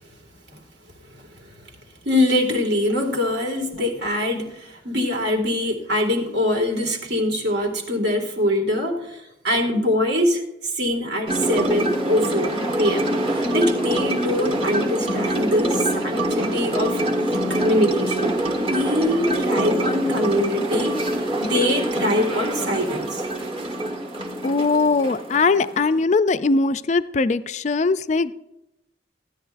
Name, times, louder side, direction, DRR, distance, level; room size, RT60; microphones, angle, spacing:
voice 1, 1.2-1.5 2.0-21.0 21.4-23.2, left 1 dB, 65° right, 3 dB, 2.1 m, -23 dB
sound 1, 11.3-26.0, right 1 dB, 30° right, 1.3 m, -25 dB
voice 2, 24.4-28.4, left 3 dB, 35° left, 12 dB, 0.3 m, -21 dB
15.5 x 10.0 x 2.5 m, 0.88 s
head